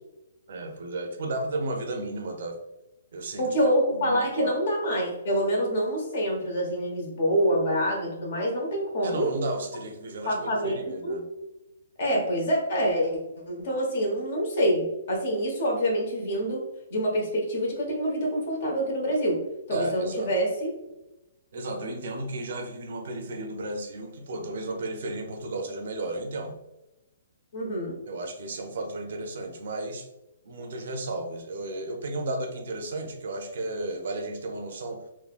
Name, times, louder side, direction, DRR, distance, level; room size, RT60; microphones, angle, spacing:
voice 1, 0.5-2.6 3.1-4.6 9.0-11.2 19.7-20.3 21.5-26.6 28.1-30.1 30.4-35.0, right 2 dB, 65° right, 4 dB, 0.6 m, -33 dB
voice 2, 3.4-9.3 10.2-11.2 12.0-13.2 13.5-16.6 16.9-19.4 19.7-20.7 27.5-28.0, equal, 55° left, -2 dB, 1.2 m, -26 dB
3.5 x 2.2 x 2.4 m, 0.97 s
hypercardioid pair, 150°, 0 cm